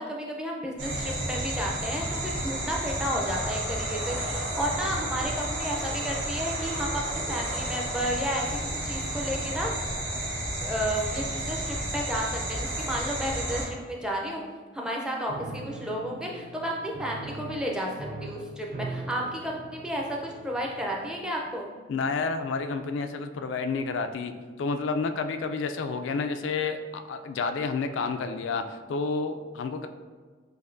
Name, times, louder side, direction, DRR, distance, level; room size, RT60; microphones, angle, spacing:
voice 1, 0.0-8.4 8.8-9.9 10.6-14.4 14.7-17.9 18.2-21.7, equal, 5° right, -2 dB, 0.4 m, -32 dB
sound 1, 0.8-13.7, right 1 dB, 80° right, 1.3 m, -31 dB
Piano, 15.3-21.2, right 2 dB, 55° right, 0.5 m, -41 dB
voice 2, 21.9-29.9, left 4 dB, 80° left, 7 dB, 0.3 m, -30 dB
6.4 x 2.6 x 2.5 m, 1.5 s
head